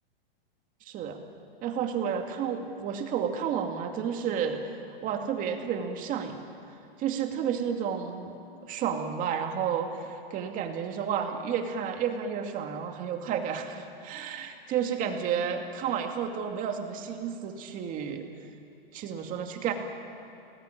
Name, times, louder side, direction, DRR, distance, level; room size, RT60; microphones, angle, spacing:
voice 1, 0.8-1.2 1.6-4.6 5.0-6.4 7.0-8.4 8.6-18.3 18.9-19.7, right 7 dB, 25° right, 4 dB, 2.3 m, -31 dB
30.0 x 20.0 x 8.8 m, 2.8 s
supercardioid pair, 155°, 30 cm